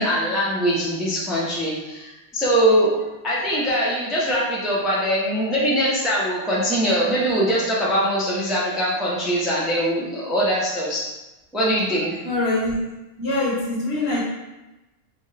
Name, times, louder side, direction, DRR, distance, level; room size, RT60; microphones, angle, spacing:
voice 1, 0.0-2.9 3.2-11.0 11.5-12.2, equal, ahead, -7 dB, 0.6 m, -22 dB
voice 2, 12.2-12.7 13.2-14.2, left 2 dB, 50° left, -6 dB, 1.2 m, -23 dB
4.3 x 2.3 x 3.3 m, 1.0 s
omnidirectional pair, 1.4 m